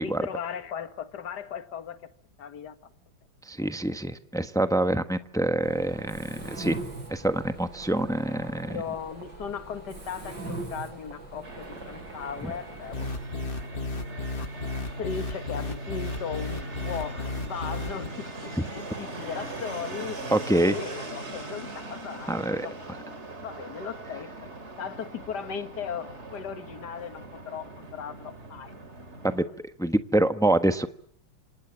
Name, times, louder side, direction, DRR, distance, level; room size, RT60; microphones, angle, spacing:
voice 1, 0.0-2.0 2.4-2.9 3.6-3.7 8.7-13.1 14.0-14.1 14.4-14.5 14.8-20.2 20.5-22.7 23.4-28.7, left 7 dB, 50° left, 9 dB, 2.1 m, -37 dB
voice 2, 3.5-6.8 7.1-8.8 12.4-12.5 18.6-18.7 20.3-20.8 22.3-22.7 29.2-29.4 29.8-30.9, right 1 dB, 5° left, 9 dB, 0.5 m, -25 dB
Mechanisms, 5.6-13.2, right 2 dB, 55° right, 7.1 m, -41 dB
Fixed-wing aircraft airplane, 11.4-29.4, right 2 dB, 30° right, 3.0 m, -41 dB
sound 1, 12.9-18.1, left 2 dB, 30° left, 1.4 m, -34 dB
27.0 x 27.0 x 7.4 m, 0.62 s
omnidirectional pair, 2.4 m